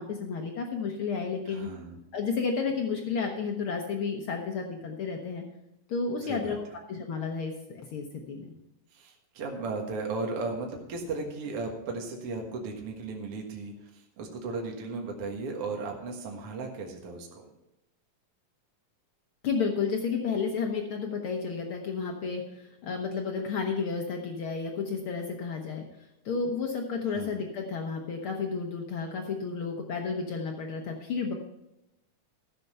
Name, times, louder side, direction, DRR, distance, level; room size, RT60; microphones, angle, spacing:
voice 1, 0.0-1.7 2.1-5.4 5.9-8.5 19.4-22.4 22.8-25.8 26.2-31.3, left 5 dB, 80° left, 2 dB, 1.1 m, -32 dB
voice 2, 1.5-2.0 6.2-6.6 8.9-17.4 27.1-27.4, right 3 dB, 50° right, 1 dB, 2.2 m, -36 dB
14.5 x 6.8 x 5.6 m, 0.90 s
omnidirectional pair, 3.8 m